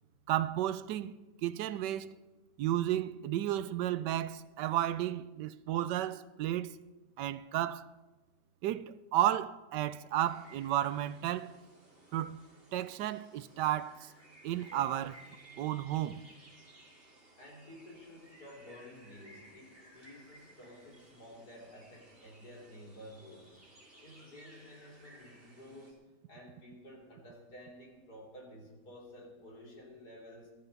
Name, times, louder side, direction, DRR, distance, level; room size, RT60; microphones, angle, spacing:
voice 1, 0.3-1.1 1.4-2.2 2.6-6.7 7.2-7.9 8.6-11.6 12.1-12.4 12.7-14.1 14.4-15.1 15.6-16.2, right 12 dB, 85° right, 1.2 m, -33 dB
sound 1, 10.2-25.9, right 1 dB, 30° right, 4.3 m, -59 dB
voice 2, 14.7-15.1 15.4-23.5 24.0-26.0 26.3-30.5, left 1 dB, 70° left, 3.9 m, -52 dB
20.0 x 13.0 x 4.1 m
omnidirectional pair, 1.8 m